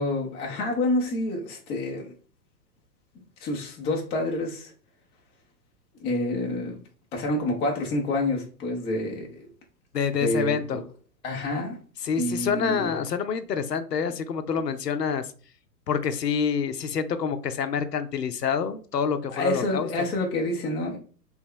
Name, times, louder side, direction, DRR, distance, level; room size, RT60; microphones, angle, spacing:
voice 1, 0.0-2.1 3.4-4.7 6.0-6.8 7.1-9.5 10.2-10.6 11.2-11.8 12.1-12.9 19.3-21.0, left 1 dB, 10° left, 0.5 m, -28 dB
voice 2, 9.9-10.8 12.0-15.3 15.9-19.9, left 6 dB, 70° left, 0.7 m, -27 dB
3.4 x 3.0 x 3.6 m
figure-of-eight pair, 105°, 50 cm